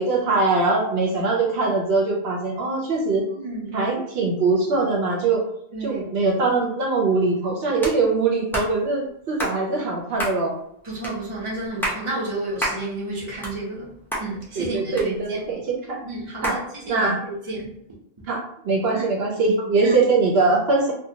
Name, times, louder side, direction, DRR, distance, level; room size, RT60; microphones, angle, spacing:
voice 1, 0.0-3.2 3.7-5.4 5.8-10.5 14.5-16.0 16.4-17.2 18.3-20.9, right 3 dB, 75° right, -1 dB, 0.8 m, -22 dB
voice 2, 3.3-3.9 5.7-6.0 10.8-15.4 16.0-17.7 18.9-19.0 19.8-19.9, right 2 dB, 30° right, -5 dB, 0.8 m, -31 dB
sound 1, 7.8-8.0 8.5-8.7 9.4-9.6 10.2-10.4 11.0-11.2 11.6-12.0 12.6-12.8 13.2-13.8 14.1-14.3 15.0-15.5 16.4-16.6, right 1 dB, 5° left, 0.5 m, -28 dB
2.7 x 2.2 x 2.7 m, 0.73 s
omnidirectional pair, 1.1 m